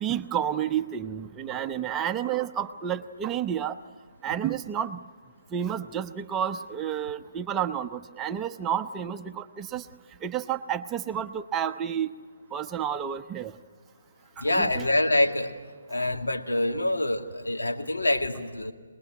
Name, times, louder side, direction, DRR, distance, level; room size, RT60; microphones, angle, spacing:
voice 1, 0.0-3.8 4.2-5.0 5.5-9.9 10.2-12.1 12.5-13.5 14.4-14.9, right 9 dB, 15° right, 9 dB, 0.7 m, -30 dB
voice 2, 14.4-15.5 15.9-18.7, left 1 dB, 85° left, 3 dB, 2.2 m, -25 dB
24.5 x 21.0 x 9.4 m, 1.5 s
figure-of-eight pair, 145°, 0 cm